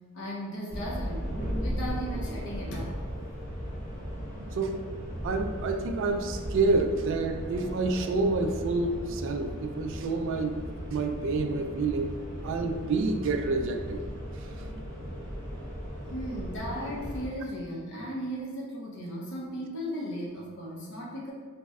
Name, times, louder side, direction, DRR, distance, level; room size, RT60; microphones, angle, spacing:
voice 1, 0.1-3.0 16.1-21.3, equal, 60° left, -3 dB, 0.7 m, -36 dB
sound 1, 0.7-17.3, equal, 35° left, 1.0 m, -37 dB
voice 2, 5.2-10.6 10.9-12.1 12.4-14.1 14.4-14.7, right 3 dB, 60° right, 5 dB, 0.3 m, -28 dB
4.1 x 2.1 x 3.5 m, 1.5 s
head